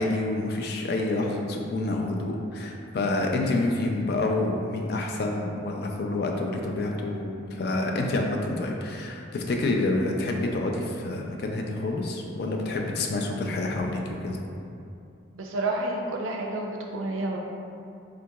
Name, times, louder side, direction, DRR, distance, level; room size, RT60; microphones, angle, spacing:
voice 1, 0.0-14.4, left 2 dB, 55° left, 1 dB, 0.3 m, -28 dB
voice 2, 15.3-17.4, right 2 dB, 90° right, 0 dB, 0.4 m, -30 dB
3.7 x 2.8 x 2.2 m, 2.5 s
head